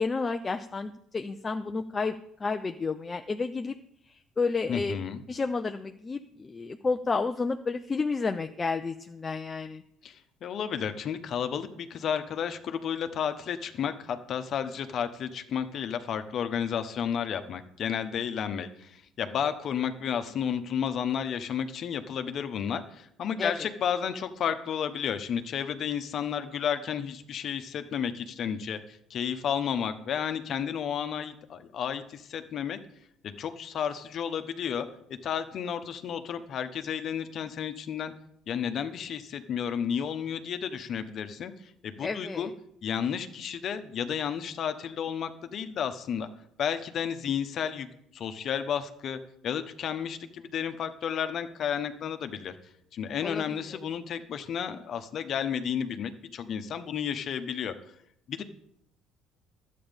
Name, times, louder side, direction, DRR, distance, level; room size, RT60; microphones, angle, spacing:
voice 1, 0.0-3.8 4.1-5.0 5.3-9.8 23.4-23.5 42.0-42.5 53.2-53.4 53.7-53.8, left 4 dB, 25° left, 6 dB, 0.6 m, -31 dB
voice 2, 4.7-5.2 10.0-28.8 29.1-32.8 33.2-34.9 35.2-38.1 38.5-41.5 41.8-42.5 42.8-46.3 46.6-47.9 48.1-52.6 52.9-57.7 58.3-58.4, left 8 dB, 55° left, 9 dB, 1.1 m, -32 dB
12.0 x 8.6 x 5.3 m, 0.72 s
supercardioid pair, 80°, 0 cm